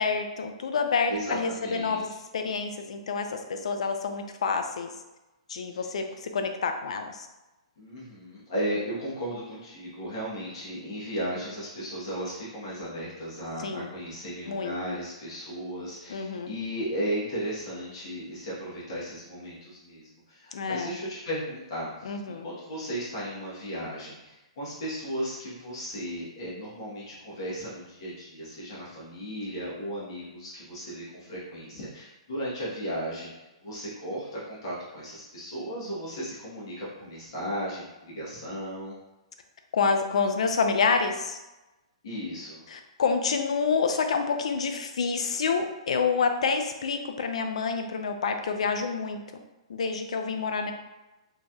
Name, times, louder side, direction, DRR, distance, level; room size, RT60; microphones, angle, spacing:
voice 1, 0.0-4.9 5.5-7.3 13.6-13.9 14.5-14.7 16.1-16.5 20.5-21.0 22.0-22.4 39.7-41.4 42.7-49.2 49.7-50.7, left 5 dB, 75° left, 6 dB, 0.4 m, -28 dB
voice 2, 1.1-2.0 5.7-5.8 7.8-33.3 33.6-38.9 42.0-42.6 50.3-50.7, equal, 45° left, -7 dB, 1.0 m, -35 dB
3.1 x 2.6 x 2.3 m, 1.0 s
hypercardioid pair, 175°, 3 cm